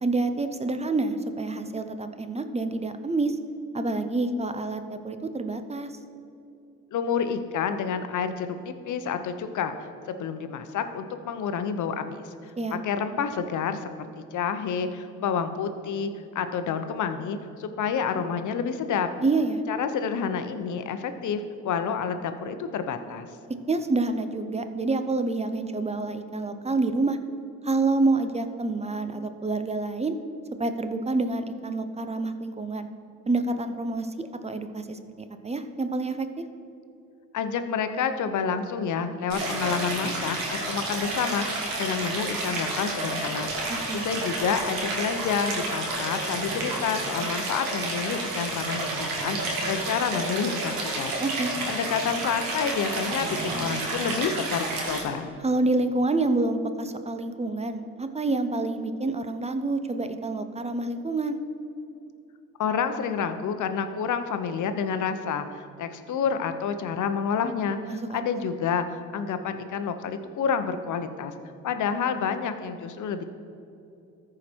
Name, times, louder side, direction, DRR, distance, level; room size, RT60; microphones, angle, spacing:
voice 1, 0.0-3.4 3.7-6.0 12.6-12.8 19.2-19.6 23.7-27.2 27.6-30.1 30.6-32.9 33.3-35.0 35.4-36.4 43.7-44.0 51.2-51.5 55.4-61.4 67.9-68.5, right 2 dB, 20° right, 9 dB, 0.7 m, -27 dB
voice 2, 6.9-9.8 10.1-12.3 12.7-13.9 14.2-19.1 19.7-23.3 37.3-51.2 51.7-55.3 62.6-71.3 71.6-73.2, left 6 dB, 60° left, 9 dB, 0.8 m, -29 dB
Stream, 39.3-55.0, right 2 dB, 80° right, 1.8 m, -30 dB
14.0 x 5.0 x 4.5 m, 2.6 s
supercardioid pair, 70°, 34 cm